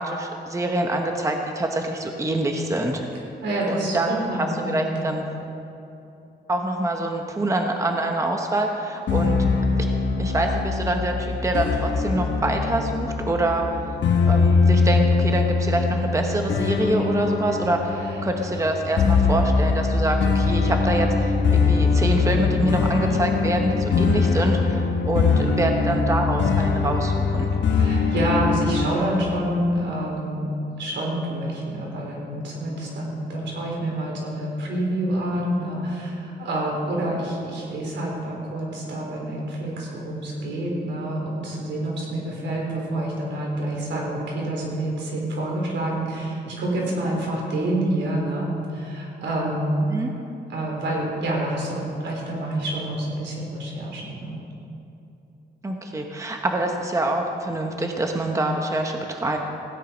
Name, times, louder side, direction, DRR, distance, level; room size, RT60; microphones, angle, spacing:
voice 1, 0.0-3.0 3.7-4.1 4.3-5.3 6.5-9.4 9.8-9.9 10.2-13.6 14.3-27.5 49.9-50.1 55.6-59.4, right 1 dB, 15° right, 3 dB, 1.0 m, -25 dB
voice 2, 3.4-5.3 18.0-18.2 18.6-18.7 27.7-49.8 50.5-54.4, right 1 dB, 80° right, -2 dB, 3.8 m, -27 dB
sound 1, 9.1-28.9, left 4 dB, 75° left, 1.4 m, -22 dB
16.5 x 10.0 x 5.1 m, 2.8 s
cardioid pair, 125°, 18 cm